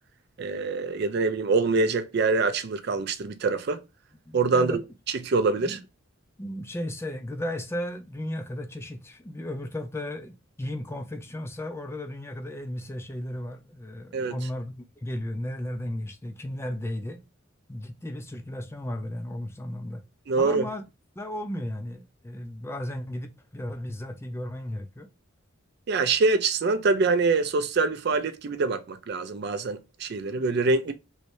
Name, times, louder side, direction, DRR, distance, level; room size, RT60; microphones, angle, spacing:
voice 1, 0.4-3.8 4.3-4.7 5.2-5.8 14.1-14.4 20.3-20.7 25.9-30.9, right 3 dB, 50° right, 0.4 m, -24 dB
voice 2, 4.3-4.8 5.6-5.8 6.4-17.2 17.7-20.0 20.4-20.8 21.2-25.1, left 1 dB, 10° left, 0.4 m, -35 dB
3.1 x 2.7 x 3.0 m
head